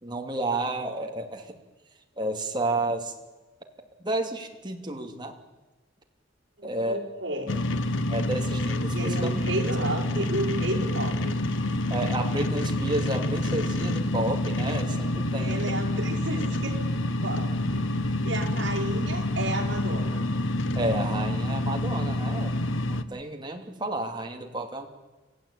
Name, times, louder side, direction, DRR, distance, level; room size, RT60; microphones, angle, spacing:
voice 1, 0.0-1.5 2.2-3.1 4.0-5.4 6.6-7.0 8.1-9.3 11.9-15.7 20.7-22.5 22.9-24.9, right 2 dB, 25° right, 2 dB, 2.8 m, -31 dB
voice 2, 6.6-7.5 8.9-11.4 15.4-16.9 17.2-17.8 18.2-20.2, right 1 dB, 65° right, -2 dB, 5.1 m, -32 dB
sound 1, 7.5-23.0, left 1 dB, 85° left, 1.2 m, -27 dB
27.0 x 16.0 x 8.8 m, 1.2 s
head